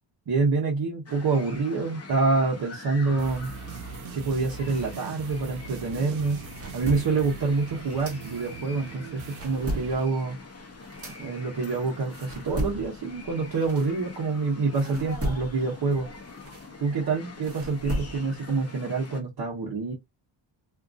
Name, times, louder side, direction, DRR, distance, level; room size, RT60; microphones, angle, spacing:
voice 1, 0.3-3.5 4.1-6.4 6.7-10.4 11.2-16.1 16.8-19.9, right 4 dB, 55° right, 1.1 m, -27 dB
sound 1, 1.1-19.2, left 4 dB, 30° left, 0.9 m, -45 dB
sound 2, 3.1-10.1, right 7 dB, 85° right, 0.5 m, -41 dB
sound 3, 6.2-8.7 9.1-14.4 14.7-18.5, equal, 30° right, 1.1 m, -36 dB
2.8 x 2.5 x 2.4 m
cardioid pair, 90°, 47 cm